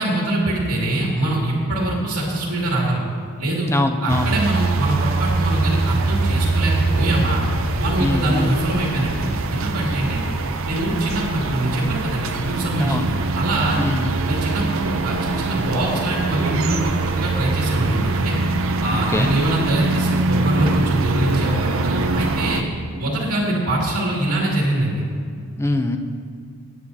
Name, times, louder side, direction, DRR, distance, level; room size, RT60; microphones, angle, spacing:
voice 1, 0.0-3.0 3.4-3.7 4.0-7.4 7.8-10.2 10.7-13.8 14.3-18.3 18.8-22.6 23.0-25.0, right 1 dB, 80° right, -4 dB, 2.1 m, -23 dB
voice 2, 3.7-4.4 8.0-8.5 12.8-13.1 13.8-14.1 19.1-19.4 25.6-26.0, left 2 dB, 10° left, 6 dB, 0.5 m, -22 dB
sound 1, 4.1-22.6, right 3 dB, 60° right, 0.6 m, -23 dB
16.0 x 8.7 x 2.7 m, 2.2 s
head